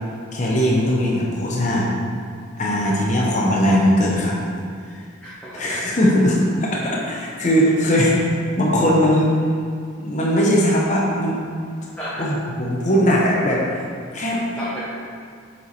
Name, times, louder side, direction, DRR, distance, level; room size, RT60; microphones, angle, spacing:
voice 1, 0.3-1.9 2.6-4.4 5.5-8.2 8.6-9.4 10.0-11.4 12.2-13.8 14.1-14.4, equal, 35° left, -4 dB, 0.9 m, -19 dB
voice 2, 5.2-5.8 12.0-12.3 14.6-14.9, equal, 5° left, -10 dB, 1.0 m, -32 dB
7.3 x 4.7 x 4.1 m, 2.2 s
head